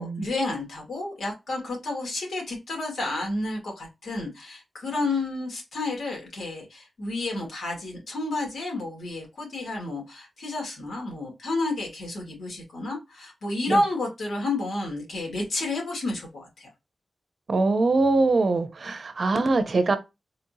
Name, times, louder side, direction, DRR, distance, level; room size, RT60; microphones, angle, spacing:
voice 1, 0.0-16.7, left 2 dB, 80° left, 2.0 m, -30 dB
voice 2, 17.5-20.0, right 3 dB, 55° right, 0.7 m, -23 dB
4.2 x 2.8 x 2.7 m
wide cardioid pair, 80°, 0 cm